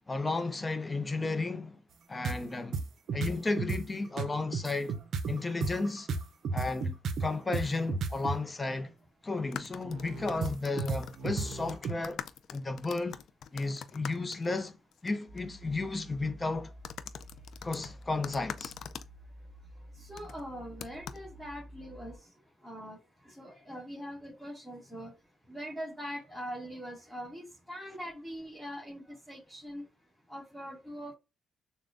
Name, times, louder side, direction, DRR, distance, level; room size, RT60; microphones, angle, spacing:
voice 1, 0.1-1.8 2.1-2.9 3.1-5.0 5.3-6.1 6.5-8.9 9.2-12.2 12.5-13.2 13.5-14.8 15.0-16.7 17.6-18.7, left 3 dB, 20° left, 0.7 m, -33 dB
sound 1, 2.2-2.4 2.7-3.8 4.2-8.4 9.8-12.0, right 4 dB, 65° right, 0.5 m, -33 dB
sound 2, 6.6-6.8 7.6-7.8 8.0-8.1 9.4-15.1 15.4-15.5 16.8-19.1 20.2-20.4 20.8-21.2, left 8 dB, 65° left, 0.4 m, -44 dB
sound 3, 15.3-22.2, equal, 40° right, 1.5 m, -51 dB
voice 2, 20.0-22.2 22.6-23.0 23.2-25.1 25.5-29.8 30.3-31.1, equal, 5° left, 2.2 m, -42 dB
6.6 x 2.2 x 2.6 m
cardioid pair, 90°, 0 cm